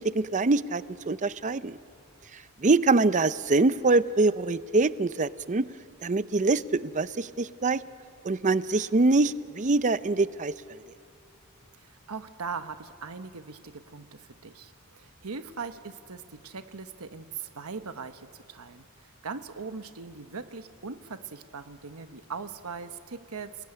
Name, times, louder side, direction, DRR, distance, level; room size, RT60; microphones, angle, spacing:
voice 1, 0.0-1.8 2.6-5.7 6.0-7.8 8.2-10.5, right 3 dB, 35° right, 15 dB, 0.6 m, -24 dB
voice 2, 11.7-23.7, right 5 dB, 75° right, 9 dB, 1.1 m, -40 dB
30.0 x 20.0 x 9.8 m, 2.5 s
head